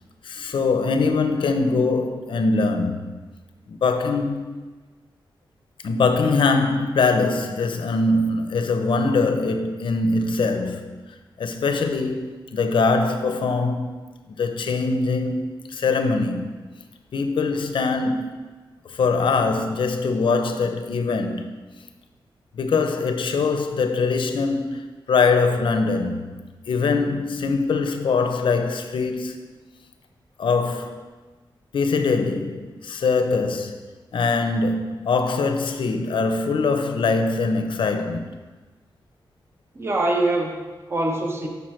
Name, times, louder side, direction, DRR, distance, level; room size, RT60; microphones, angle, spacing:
voice 1, 0.2-3.1 3.7-4.6 5.8-11.0 11.4-13.9 14.4-16.5 17.1-18.3 18.8-21.6 22.5-24.8 25.1-26.3 26.7-29.4 30.4-31.0 31.7-33.8 34.1-38.3, left 4 dB, 75° left, 0.7 m, -22 dB
voice 2, 39.7-41.5, right 2 dB, 30° right, 0.9 m, -24 dB
7.8 x 5.4 x 4.4 m
wide cardioid pair, 135°, 9 cm